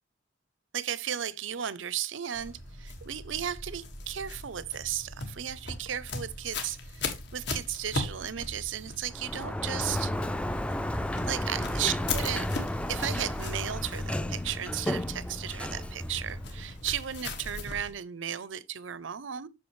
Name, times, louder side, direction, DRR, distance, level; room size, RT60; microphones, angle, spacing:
voice 1, 0.7-10.2 11.3-12.5 12.9-19.5, right 10 dB, 80° right, 0.7 m, -35 dB
sound 1, 2.3-17.9, left 3 dB, 65° left, 1.8 m, -39 dB
Sliding door, 9.1-16.9, left 1 dB, 5° left, 0.4 m, -33 dB
8.6 x 6.3 x 3.2 m
head